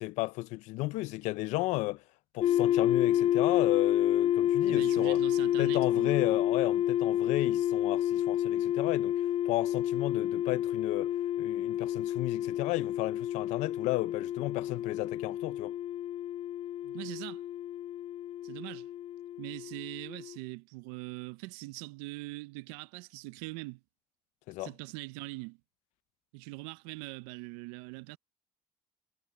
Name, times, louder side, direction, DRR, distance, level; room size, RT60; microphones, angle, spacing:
voice 1, 0.0-2.0 2.3-5.2 5.6-9.1 9.5-15.7 24.5-24.7, left 21 dB, 80° left, 0.5 m, -33 dB
sound 1, 2.4-20.4, left 11 dB, 55° left, 0.8 m, -29 dB
voice 2, 4.7-6.4 16.8-17.4 18.4-18.9 19.4-23.8 24.6-25.6 26.3-28.2, right 22 dB, 85° right, 0.7 m, -42 dB
supercardioid pair, 65°, 12 cm